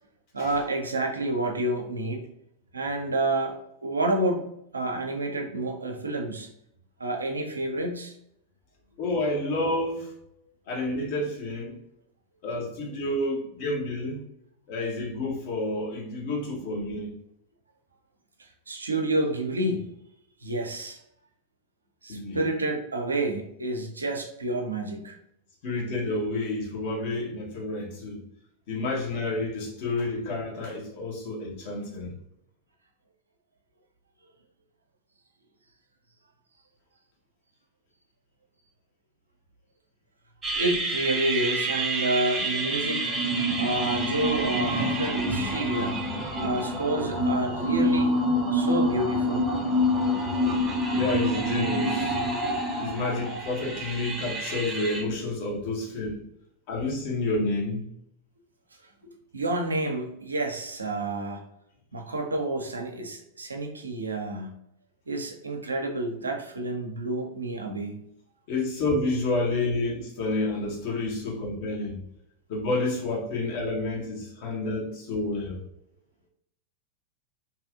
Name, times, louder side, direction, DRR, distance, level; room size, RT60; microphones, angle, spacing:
voice 1, 0.3-2.3 2.7-4.5 4.7-6.5 7.0-8.1 18.7-19.9 20.4-21.0 22.0-25.2 40.6-43.1 43.6-46.0 46.4-48.1 48.5-49.4 59.0-61.4 61.9-64.5 65.1-68.1, right 2 dB, 75° right, 2 dB, 0.4 m, -29 dB
voice 2, 9.0-10.1 10.7-11.8 12.4-14.2 14.7-17.1 22.1-22.4 25.6-28.2 28.7-32.1 50.9-52.1 52.8-56.1 56.7-57.8 68.5-72.0 72.5-75.6, left 2 dB, 45° left, -3 dB, 1.0 m, -29 dB
sound 1, 40.4-55.0, equal, 20° right, 0.6 m, -27 dB
2.7 x 2.4 x 2.4 m, 0.74 s
figure-of-eight pair, 90°, 0 cm